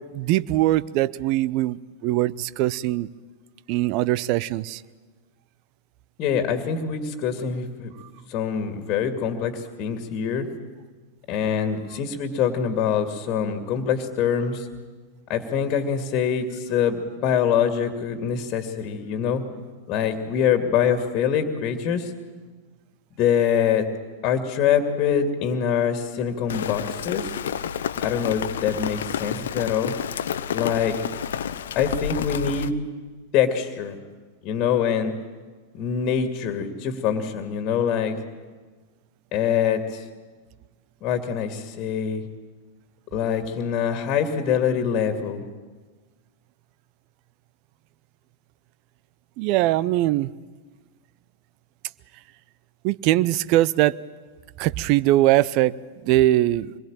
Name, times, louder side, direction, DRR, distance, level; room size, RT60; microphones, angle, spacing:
voice 1, 0.0-3.1 3.7-4.8 49.4-50.3 52.8-54.0 54.6-55.7 56.0-56.7, right 15 dB, 45° right, 19 dB, 0.7 m, -21 dB
voice 2, 6.2-7.9 8.3-10.5 11.3-14.7 15.3-19.4 19.9-22.1 23.2-23.9 24.2-27.3 28.0-29.9 30.5-31.0 31.8-32.8 33.3-34.0 34.4-35.1 35.7-38.2 39.3-40.0 41.0-42.3 43.1-45.4, left 7 dB, 40° left, 7 dB, 2.3 m, -24 dB
Rain, 26.5-32.7, left 8 dB, 70° left, 0.9 m, -30 dB
25.5 x 21.5 x 9.0 m, 1.4 s
figure-of-eight pair, 95°, 0 cm